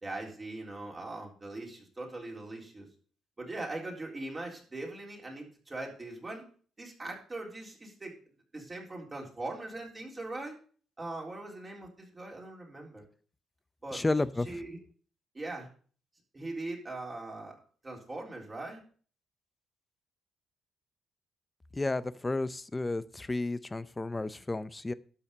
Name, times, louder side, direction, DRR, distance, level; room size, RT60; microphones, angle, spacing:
voice 1, 0.0-2.9 3.4-6.4 6.8-8.1 8.5-10.6 11.0-13.1 13.8-14.1 14.5-14.8 15.3-15.7 16.3-18.8, right 2 dB, 25° right, -1 dB, 3.8 m, -41 dB
voice 2, 13.9-14.5 21.7-24.9, left 2 dB, 20° left, 16 dB, 0.7 m, -32 dB
12.0 x 5.6 x 6.8 m, 0.43 s
cardioid pair, 90°, 0 cm